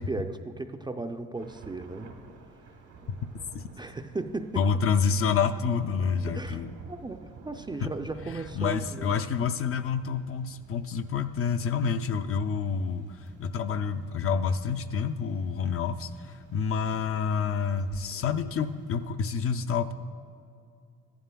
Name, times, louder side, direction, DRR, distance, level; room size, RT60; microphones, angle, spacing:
voice 1, 0.0-2.1 3.8-4.6 6.3-6.6 6.9-9.2 18.1-18.2, right 3 dB, 15° right, 6 dB, 0.4 m, -36 dB
Thunder / Rain, 1.3-19.1, right 4 dB, 75° right, 1.2 m, -51 dB
voice 2, 3.2-3.6 4.6-6.7 7.8-7.9 8.6-19.9, left 6 dB, 50° left, 9 dB, 0.5 m, -28 dB
14.0 x 11.5 x 2.3 m, 2.5 s
cardioid pair, 90°, 30 cm